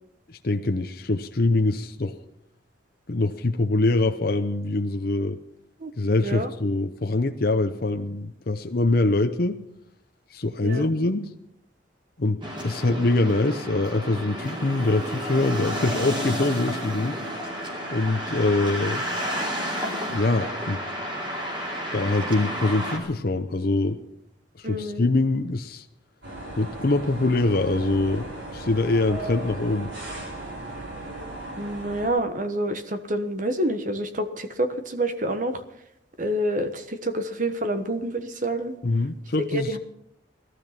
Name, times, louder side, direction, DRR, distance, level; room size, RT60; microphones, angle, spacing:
voice 1, 0.3-2.1 3.1-5.4 6.0-9.6 10.3-11.3 12.2-17.2 17.9-19.0 20.1-20.8 21.9-24.0 24.6-25.8 26.6-29.9 38.8-39.8, left 2 dB, 50° left, 6 dB, 0.7 m, -24 dB
sound 1, 12.4-23.0, equal, 25° right, 3.5 m, -31 dB
voice 2, 24.6-25.0 31.6-35.6 36.2-38.7 39.5-39.8, right 1 dB, 40° right, 9 dB, 1.3 m, -27 dB
sound 2, 26.2-32.1, right 2 dB, 85° right, 7.0 m, -36 dB
18.0 x 12.5 x 5.9 m, 0.80 s
head